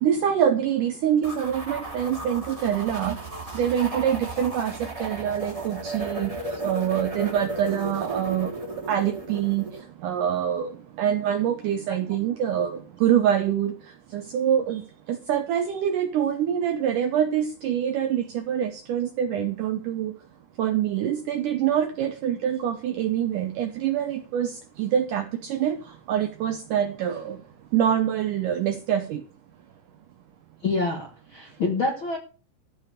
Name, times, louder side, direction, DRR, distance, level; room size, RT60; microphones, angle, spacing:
voice 1, 0.0-3.2 3.6-6.4 6.6-8.5 8.9-9.7 10.0-10.7 11.0-13.7 14.1-14.8 15.1-20.1 20.6-24.5 24.8-25.8 26.1-27.4 27.7-29.2, right 9 dB, 80° right, 7 dB, 1.9 m, -25 dB
sound 1, 1.2-9.8, right 1 dB, 10° right, 1.7 m, -35 dB
voice 2, 30.6-32.2, left 3 dB, 55° left, 2 dB, 1.4 m, -26 dB
14.5 x 5.1 x 8.0 m, 0.37 s
omnidirectional pair, 4.7 m